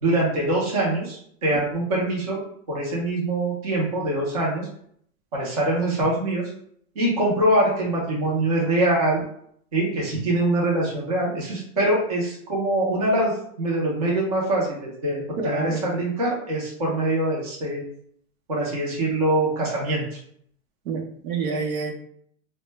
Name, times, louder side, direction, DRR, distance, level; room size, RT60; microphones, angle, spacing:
voice 1, 0.0-2.4 2.7-4.7 5.3-6.4 7.0-9.2 9.7-17.8 18.5-20.2, right 1 dB, 30° right, -4 dB, 0.4 m, -24 dB
voice 2, 15.4-15.8 20.9-21.9, right 4 dB, 75° right, 3 dB, 0.7 m, -28 dB
2.1 x 2.0 x 3.1 m, 0.65 s
supercardioid pair, 175°, 43 cm